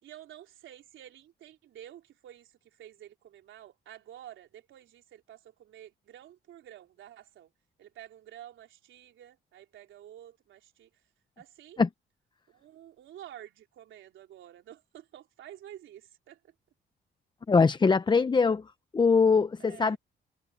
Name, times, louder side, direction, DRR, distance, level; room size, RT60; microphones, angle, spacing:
voice 1, 0.0-2.5 2.8-7.5 7.8-10.9 11.4-11.8 12.5-16.4 19.6-20.0, right 11 dB, 75° right, 3.7 m, -50 dB
voice 2, 17.5-18.6 18.9-20.0, left 4 dB, 25° left, 0.7 m, -22 dB
cardioid pair, 90°, 20 cm